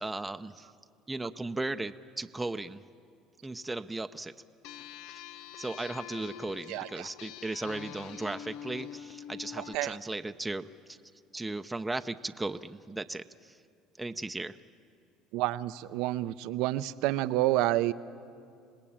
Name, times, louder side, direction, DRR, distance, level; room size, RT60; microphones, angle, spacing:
voice 1, 0.0-0.7 1.1-2.8 3.4-4.3 5.6-11.0 11.3-13.5 14.0-14.6, right 2 dB, 10° right, 8 dB, 0.7 m, -36 dB
sound 1, 4.6-9.8, left 10 dB, 75° left, 0.5 m, -45 dB
voice 2, 6.7-7.1 9.6-10.0 15.3-17.9, right 16 dB, 75° right, 14 dB, 0.7 m, -29 dB
26.5 x 19.0 x 8.8 m, 2.4 s
supercardioid pair, 90°, 0 cm